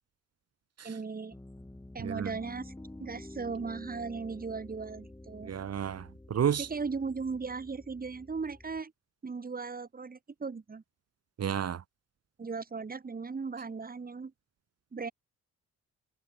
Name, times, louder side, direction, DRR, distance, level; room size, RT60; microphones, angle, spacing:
voice 1, 0.8-1.4 1.9-2.7 3.0-5.5 6.6-8.9 9.2-10.8 12.4-14.3 14.9-15.1, right 4 dB, 30° right, 3.8 m, -37 dB
Piano, 1.3-8.8, left 1 dB, 10° left, 7.3 m, -49 dB
voice 2, 2.0-2.3 5.4-6.7 11.4-11.8, right 8 dB, 55° right, 3.9 m, -31 dB
cardioid pair, 90°, 30 cm